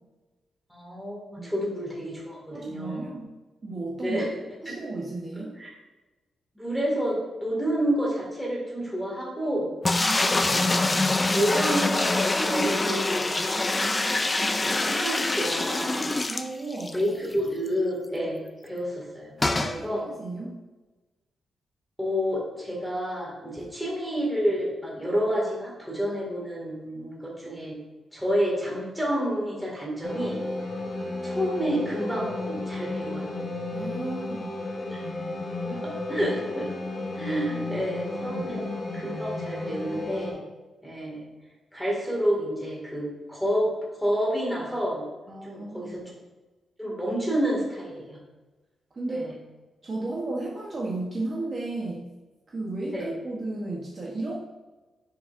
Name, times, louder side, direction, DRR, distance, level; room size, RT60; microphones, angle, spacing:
voice 1, 0.7-3.1 4.0-4.3 4.7-4.8 5.6-5.7 6.6-9.7 10.4-10.7 11.1-13.3 13.9-14.2 14.6-16.1 16.9-20.1 22.0-27.8 28.1-30.4 31.2-33.3 34.9-35.0 35.6-36.8 37.1-38.6 38.9-40.4 40.8-41.3 41.7-43.7 44.0-45.0 45.4-46.0 46.8-48.2 49.1-49.4 52.9-53.1, equal, ahead, -3 dB, 2.0 m, -29 dB
voice 2, 2.5-3.3 3.6-4.2 4.6-5.5 9.9-10.5 13.4-13.5 16.3-17.0 19.6-20.5 33.7-34.6 37.6-37.8 38.3-38.5 45.3-46.1 48.9-49.3 49.8-52.0 52.5-54.3, right 2 dB, 30° right, -4 dB, 1.0 m, -34 dB
sound 1, 9.8-17.0 17.3-17.4 17.7-17.8 19.4-19.8, left 2 dB, 15° left, 0.3 m, -25 dB
sound 2, 30.0-40.3, left 2 dB, 35° left, 1.3 m, -33 dB
10.5 x 5.1 x 2.5 m, 1.2 s
wide cardioid pair, 165°, 0 cm